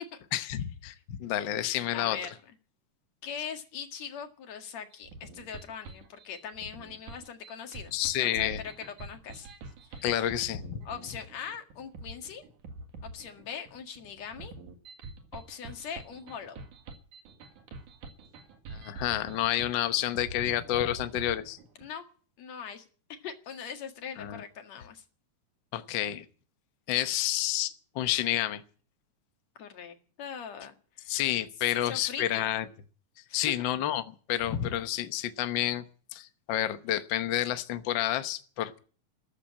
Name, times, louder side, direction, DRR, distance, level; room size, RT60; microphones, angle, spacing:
voice 1, 0.3-2.2 7.9-8.6 10.0-10.8 18.7-21.6 24.2-24.4 25.7-26.2 26.9-28.6 31.1-32.7 33.3-35.8 36.1-38.8, left 12 dB, 85° left, 10 dB, 1.0 m, -29 dB
voice 2, 1.9-2.3 3.2-7.9 8.2-9.5 9.9-10.0 10.8-12.4 13.0-14.5 15.3-16.7 21.8-22.0 22.4-25.0 29.6-31.1 31.7-32.4 33.3-33.5, left 7 dB, 60° left, 6 dB, 3.0 m, -41 dB
sound 1, 4.9-21.8, right 3 dB, 75° right, 3.3 m, -46 dB
14.0 x 12.0 x 8.5 m, 0.42 s
omnidirectional pair, 3.6 m